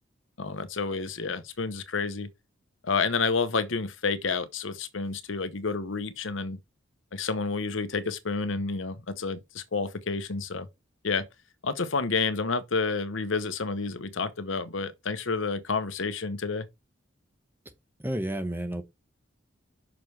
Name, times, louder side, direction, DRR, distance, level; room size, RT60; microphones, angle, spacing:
voice 1, 0.4-2.3 2.8-6.6 7.1-10.7 11.0-11.3 11.6-16.7, left 4 dB, 75° left, 0.9 m, -29 dB
voice 2, 18.0-18.8, right 1 dB, 10° right, 1.0 m, -31 dB
6.1 x 5.3 x 4.7 m
head